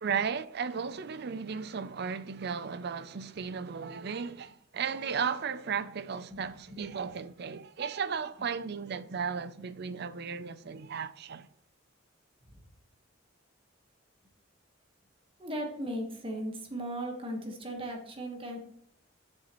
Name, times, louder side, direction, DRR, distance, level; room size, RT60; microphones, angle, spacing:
voice 1, 0.0-11.5, right 6 dB, 55° right, 0.5 m, -35 dB
voice 2, 6.3-6.9 12.5-12.6 15.4-18.6, right 1 dB, 30° right, 1.4 m, -37 dB
9.1 x 7.2 x 3.0 m
head